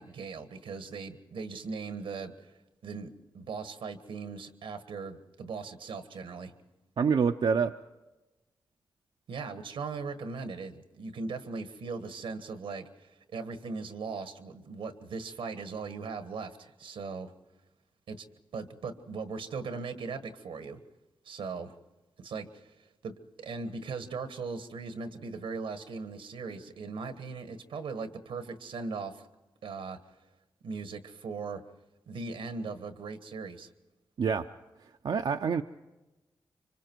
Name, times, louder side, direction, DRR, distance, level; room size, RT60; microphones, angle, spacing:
voice 1, 0.0-2.5 2.8-6.5 9.3-17.3 18.1-18.2 18.5-20.8 21.2-21.8 22.2-22.8 23.0-29.2 29.6-30.0 30.6-31.6 32.1-33.7, right 4 dB, 90° right, 9 dB, 1.4 m, -39 dB
voice 2, 7.0-7.7 34.2-34.5 35.0-35.6, right 6 dB, 70° right, 4 dB, 0.6 m, -26 dB
26.0 x 25.0 x 4.6 m, 1.1 s
cardioid pair, 45°, 9 cm